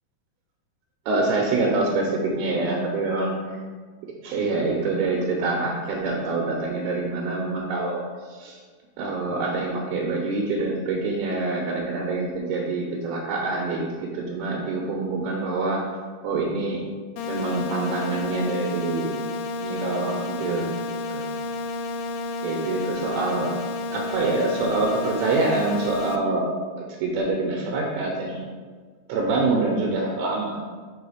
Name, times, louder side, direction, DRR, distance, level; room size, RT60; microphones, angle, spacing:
voice 1, 1.1-3.4 4.2-8.6 9.0-15.8 16.2-16.8 17.3-19.1 19.6-20.7 21.1-21.3 22.4-23.6 23.9-26.5 27.0-28.5 29.1-30.6, right 3 dB, 80° right, -1 dB, 2.7 m, -25 dB
sound 1, 17.2-26.2, left 3 dB, 85° left, 2.5 m, -31 dB
5.6 x 4.7 x 4.9 m, 1.5 s
omnidirectional pair, 4.6 m